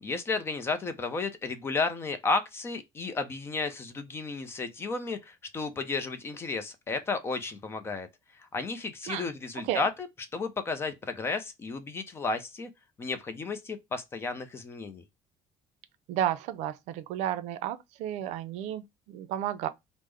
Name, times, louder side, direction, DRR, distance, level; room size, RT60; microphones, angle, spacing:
voice 1, 0.0-8.1 8.5-10.1 10.3-12.7 13.0-15.0, left 4 dB, 20° left, 0.4 m, -33 dB
voice 2, 16.1-19.7, right 11 dB, 70° right, 0.5 m, -32 dB
3.5 x 2.0 x 3.1 m
cardioid pair, 170°, 12 cm